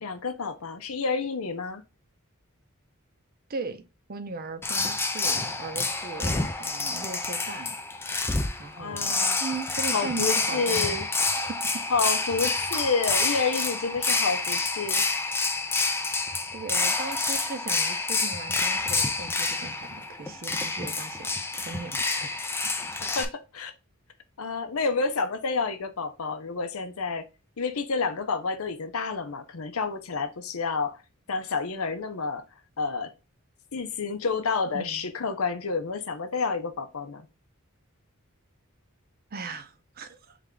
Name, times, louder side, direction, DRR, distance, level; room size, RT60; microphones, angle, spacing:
voice 1, 0.0-1.8 8.8-9.4 9.9-11.1 11.9-15.0 23.0-23.7 24.4-27.3 27.6-31.0 31.3-32.4 32.8-33.1 33.7-37.3, left 4 dB, 80° left, 0.7 m, -29 dB
voice 2, 3.5-7.8 8.6-11.0 11.3-11.8 12.5-12.7 16.5-22.3 34.7-35.1 39.3-40.4, right 4 dB, 45° right, 0.6 m, -38 dB
sound 1, 4.6-23.2, left 3 dB, 10° left, 0.3 m, -28 dB
3.6 x 3.3 x 3.7 m
head